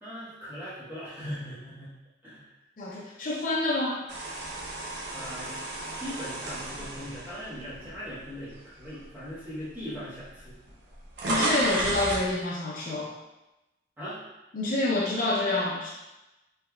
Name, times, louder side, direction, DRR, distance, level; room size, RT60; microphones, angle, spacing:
voice 1, 0.0-1.9 2.2-2.5 5.1-5.6 5.9-10.5 14.0-14.2, equal, 10° right, -10 dB, 1.1 m, -39 dB
voice 2, 2.8-4.1 11.3-13.1 14.5-15.9, left 2 dB, 45° left, -4 dB, 0.5 m, -27 dB
sound 1, 4.1-8.3 8.8-9.0 9.9-10.0 10.2-12.3, right 2 dB, 80° right, 0.7 m, -33 dB
3.4 x 3.0 x 2.3 m, 1.0 s
head